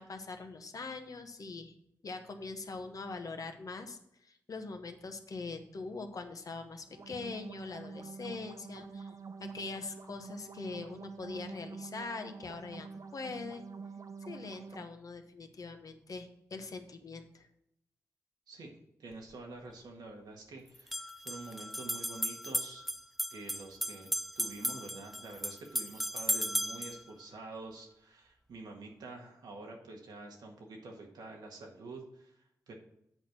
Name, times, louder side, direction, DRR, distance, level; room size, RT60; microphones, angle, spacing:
voice 1, 0.0-1.7 2.0-9.1 9.4-13.6 14.3-17.5, left 3 dB, 60° left, 6 dB, 1.1 m, -43 dB
sound 1, 6.9-14.8, right 4 dB, 55° right, 0.7 m, -47 dB
voice 2, 19.0-22.8 23.3-24.1 24.3-32.7, right 3 dB, 85° right, 1 dB, 1.6 m, -47 dB
sound 2, 19.1-19.2 20.7-27.0, equal, ahead, 0.6 m, -36 dB
7.8 x 4.4 x 6.4 m, 0.79 s
supercardioid pair, 45°, 7 cm